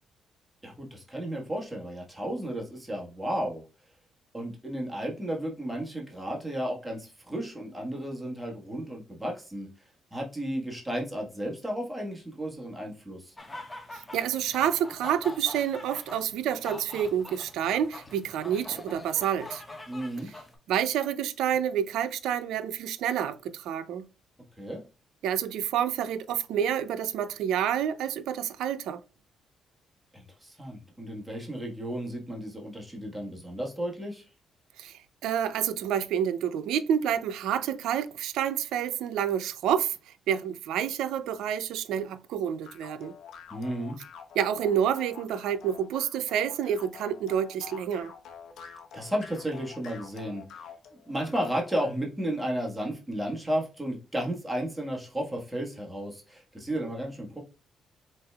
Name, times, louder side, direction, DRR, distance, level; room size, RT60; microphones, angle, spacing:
voice 1, 0.6-3.6 4.3-9.7 10.1-13.3 19.9-20.3 24.6-24.8 30.1-34.2 43.5-44.0 48.9-50.7 51.1-57.4, equal, 5° right, 1.5 m, -33 dB
sound 1, 13.4-20.6, left 2 dB, 15° left, 1.3 m, -44 dB
voice 2, 13.9-19.6 20.3-20.4 20.7-24.1 25.2-29.0 34.8-40.0 40.3-43.2 44.3-48.1, right 9 dB, 85° right, 0.5 m, -28 dB
sound 2, 42.6-52.0, left 7 dB, 75° left, 1.0 m, -47 dB
5.3 x 3.9 x 2.3 m
cardioid pair, 90°, 0 cm